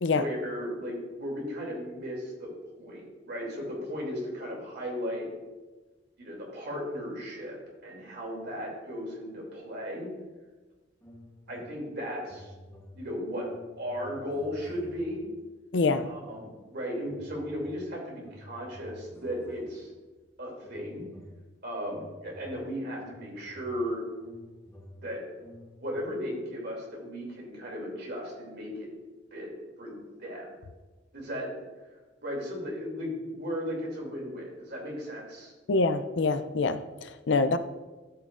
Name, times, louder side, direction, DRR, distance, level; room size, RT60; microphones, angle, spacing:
voice 1, 0.1-2.5 2.8-5.3 6.2-7.6 7.8-10.1 11.5-12.5 12.9-13.5 13.8-15.3 16.0-19.9 20.4-21.0 21.6-24.0 25.0-25.2 25.8-28.9 29.3-29.5 29.8-30.6 31.1-31.5 32.2-35.5, equal, 60° right, -2 dB, 2.9 m, -36 dB
sound 1, 11.0-11.9 12.2-15.3 15.8-16.7 17.0-20.1 20.6-26.0, equal, 15° left, 1.1 m, -51 dB
voice 2, 15.7-16.1 35.7-37.6, left 3 dB, 70° left, 11 dB, 0.5 m, -25 dB
13.5 x 6.3 x 2.5 m, 1.2 s
head